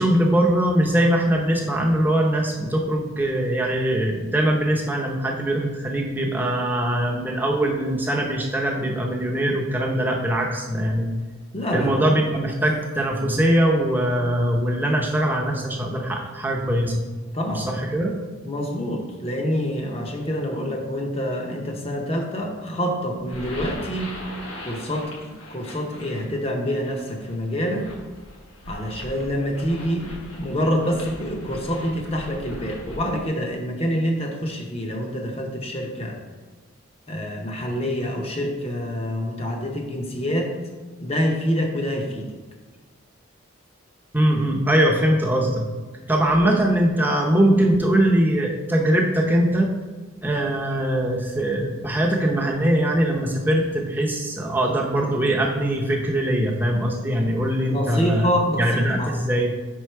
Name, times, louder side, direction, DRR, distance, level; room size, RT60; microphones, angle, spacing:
voice 1, 0.0-11.1 11.7-17.0 17.5-18.1 27.8-27.9 44.1-45.6 46.1-49.7 50.2-58.3 58.6-59.5, right 1 dB, 10° right, -1 dB, 0.7 m, -21 dB
voice 2, 11.5-12.0 17.3-17.7 18.4-24.2 24.6-27.9 28.7-30.1 30.4-36.2 37.1-40.5 41.0-42.3 46.4-46.5 57.6-59.1, equal, 30° left, 2 dB, 0.8 m, -26 dB
sound 1, 23.2-33.3, left 1 dB, 85° left, 1.3 m, -40 dB
5.6 x 4.7 x 4.4 m, 1.3 s
head